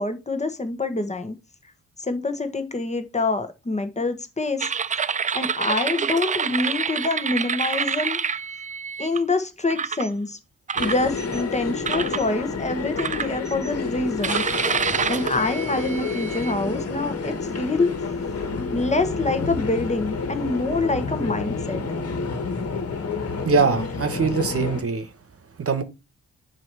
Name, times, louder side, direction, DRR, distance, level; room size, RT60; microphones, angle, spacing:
voice 1, 0.0-1.3 2.0-4.7 5.3-8.2 9.0-10.4 10.8-14.4 15.1-17.9 18.7-21.8, left 2 dB, 20° left, 1.3 m, -26 dB
sound 1, 4.6-9.2 9.7-10.1 10.7-11.4 11.9-12.2 13.0-13.7 14.2-16.5, right 6 dB, 25° right, 0.3 m, -27 dB
sound 2, 10.8-24.8, left 4 dB, 50° left, 1.7 m, -29 dB
voice 2, 23.4-25.1 25.6-25.8, right 5 dB, 50° right, 1.2 m, -22 dB
7.6 x 3.0 x 6.1 m
cardioid pair, 90°, 30 cm